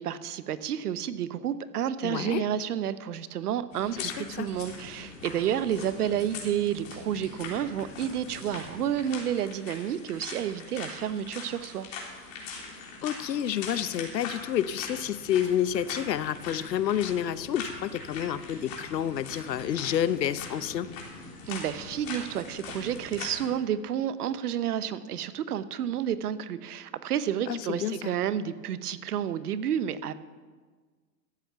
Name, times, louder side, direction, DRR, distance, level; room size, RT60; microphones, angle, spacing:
voice 1, 0.0-11.9 21.5-30.1, right 10 dB, 65° right, 14 dB, 0.9 m, -30 dB
voice 2, 2.0-2.4 4.0-4.5 13.0-20.9 27.5-28.1, left 10 dB, 80° left, 16 dB, 0.8 m, -29 dB
Footsteps in countryside, 3.7-23.5, left 4 dB, 50° left, 3.6 m, -42 dB
13.0 x 8.3 x 6.9 m, 1.5 s
hypercardioid pair, 130°, 50 cm